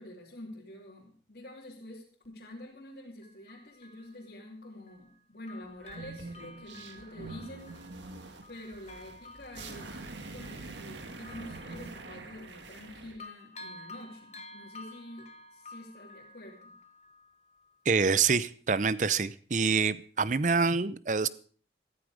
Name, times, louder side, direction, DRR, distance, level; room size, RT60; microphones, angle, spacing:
voice 1, 0.0-7.8 8.5-10.0 10.3-16.8, left 1 dB, 60° left, -5 dB, 2.8 m, -47 dB
Bell, 2.2-2.3 3.2-5.2 5.5-12.9 13.2-17.8 18.2-18.3, left 2 dB, 35° left, 1.3 m, -52 dB
sound 1, 5.8-13.2, right 3 dB, 85° right, 2.0 m, -45 dB
voice 2, 17.9-21.3, right 5 dB, 45° right, 17 dB, 0.6 m, -26 dB
14.0 x 14.0 x 4.9 m, 0.43 s
head